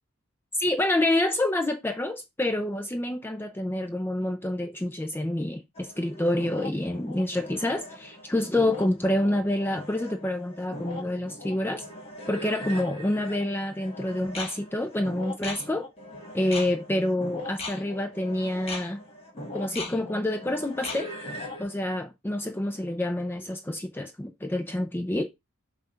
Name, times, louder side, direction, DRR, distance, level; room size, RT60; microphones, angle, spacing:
voice 1, 0.6-11.8 12.3-15.9 16.3-19.0 19.5-21.1 21.6-25.2, left 1 dB, 10° left, 0.5 m, -27 dB
sound 1, 5.7-21.6, left 2 dB, 30° left, 1.8 m, -39 dB
7.4 x 2.5 x 5.5 m
head